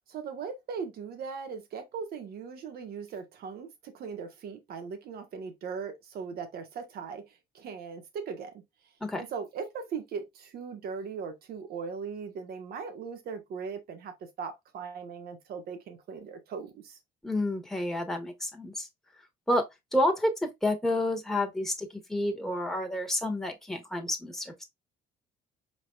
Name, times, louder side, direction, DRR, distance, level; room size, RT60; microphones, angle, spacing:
voice 1, 0.1-7.2 7.5-8.6 9.1-17.0, right 5 dB, 65° right, 1.5 m, -39 dB
voice 2, 17.2-18.9 19.5-19.6 19.9-24.6, left 1 dB, ahead, 1.5 m, -29 dB
5.0 x 4.0 x 2.4 m
cardioid pair, 110°, 17 cm